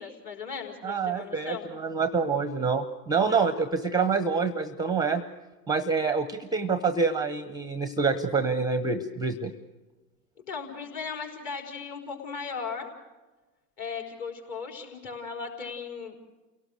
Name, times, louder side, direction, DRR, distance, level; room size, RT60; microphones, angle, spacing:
voice 1, 0.0-1.7 3.2-3.5 10.5-12.9 13.8-16.3, left 5 dB, 40° left, 2 dB, 4.6 m, -37 dB
voice 2, 0.8-5.2 5.7-9.5, right 5 dB, 10° right, 12 dB, 0.7 m, -26 dB
29.0 x 17.5 x 6.5 m, 1.2 s
hypercardioid pair, 95°, 47 cm